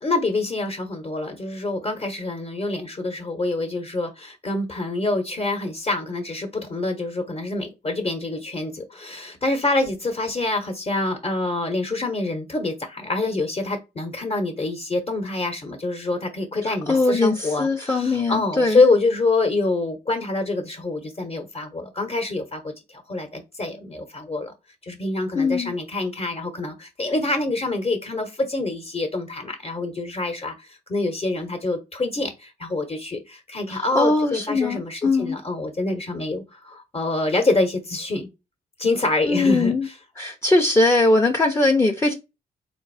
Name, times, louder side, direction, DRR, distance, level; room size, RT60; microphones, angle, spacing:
voice 1, 0.0-24.5 24.8-38.3 38.8-40.0 42.1-42.2, left 2 dB, 35° left, 1.0 m, -26 dB
voice 2, 16.7-18.8 25.4-25.7 33.7-35.4 39.3-39.9 40.2-42.1, left 2 dB, 15° left, 0.7 m, -21 dB
3.8 x 2.6 x 4.1 m
cardioid pair, 90°, 17 cm